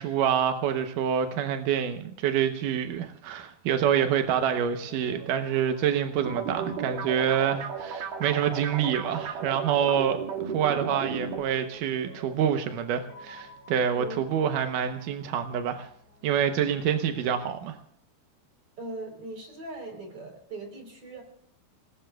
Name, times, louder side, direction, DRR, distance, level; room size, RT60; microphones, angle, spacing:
voice 1, 0.0-15.9 16.2-17.8, right 8 dB, 75° right, 7 dB, 1.9 m, -27 dB
Piano, 3.7-17.4, left 1 dB, 25° left, 4.4 m, -51 dB
sound 1, 6.3-11.4, right 6 dB, 60° right, 3.5 m, -34 dB
voice 2, 13.9-14.2 18.8-21.2, right 2 dB, 35° right, 3 dB, 4.5 m, -39 dB
27.5 x 19.5 x 2.3 m, 0.63 s
omnidirectional pair, 4.9 m